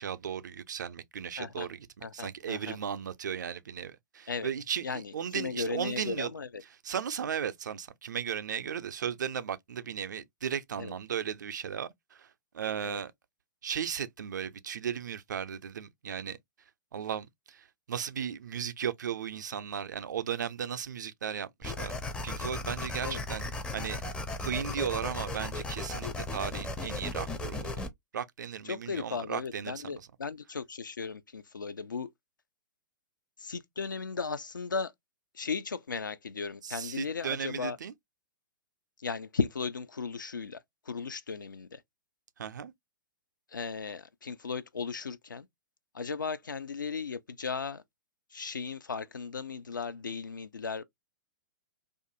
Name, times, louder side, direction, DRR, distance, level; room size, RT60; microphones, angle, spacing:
voice 1, 0.0-1.8 2.1-6.3 6.8-12.3 12.5-13.1 13.6-16.4 16.9-21.9 22.2-23.5 23.7-24.0 24.4-27.7 28.1-29.8 36.6-37.9 42.4-42.7, right 8 dB, 70° right, 0.4 m, -36 dB
voice 2, 1.4-1.7 2.0-2.8 4.3-4.5 4.8-6.6 10.8-10.9 12.8-13.0 23.0-23.2 28.6-32.1 33.4-34.9 35.3-37.8 39.0-40.6 40.9-41.8 43.5-45.5 45.9-47.8 48.3-50.8, left 5 dB, 85° left, 0.4 m, -36 dB
sound 1, 21.6-27.9, left 2 dB, 10° left, 0.4 m, -36 dB
2.5 x 2.4 x 2.6 m
figure-of-eight pair, 110°, 10 cm